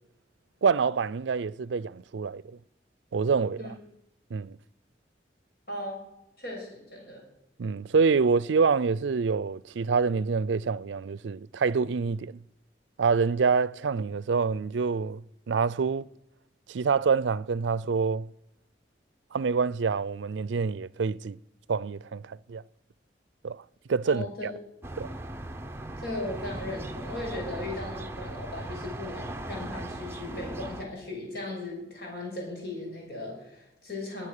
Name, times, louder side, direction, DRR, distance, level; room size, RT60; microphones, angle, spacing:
voice 1, 0.6-2.4 3.1-3.8 4.3-4.6 7.6-12.4 13.0-16.1 16.7-18.3 19.3-21.4 21.7-22.6 23.4-23.6 23.9-24.5 25.0-25.1, right 5 dB, 90° right, 0.4 m, -26 dB
voice 2, 5.7-6.0 6.4-7.2 24.0-24.5 26.0-34.3, left 2 dB, 60° left, 6.7 m, -37 dB
sound 1, 24.8-30.9, right 1 dB, 15° right, 0.7 m, -38 dB
19.5 x 9.9 x 6.6 m
head